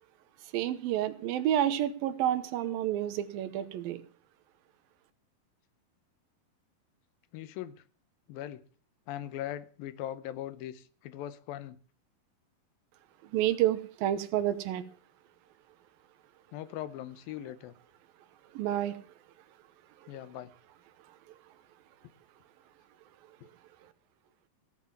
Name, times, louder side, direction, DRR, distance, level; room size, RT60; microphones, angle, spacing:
voice 1, 0.5-4.0 13.2-14.8 18.5-19.0, right 12 dB, 80° right, 13 dB, 2.8 m, -29 dB
voice 2, 7.3-7.8 8.3-8.6 9.1-11.8 16.5-17.7 20.1-20.5, left 12 dB, 85° left, 15 dB, 2.7 m, -40 dB
17.0 x 7.3 x 7.2 m, 0.43 s
omnidirectional pair, 4.1 m